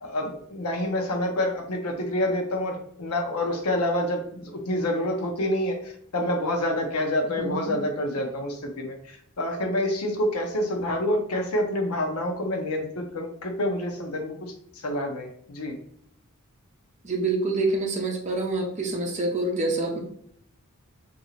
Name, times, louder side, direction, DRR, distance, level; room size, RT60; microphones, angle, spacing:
voice 1, 0.0-15.8, left 1 dB, 75° left, 3 dB, 0.7 m, -28 dB
voice 2, 7.4-7.8 17.0-20.0, right 2 dB, 30° right, 1 dB, 0.7 m, -26 dB
2.8 x 2.6 x 4.1 m, 0.66 s
head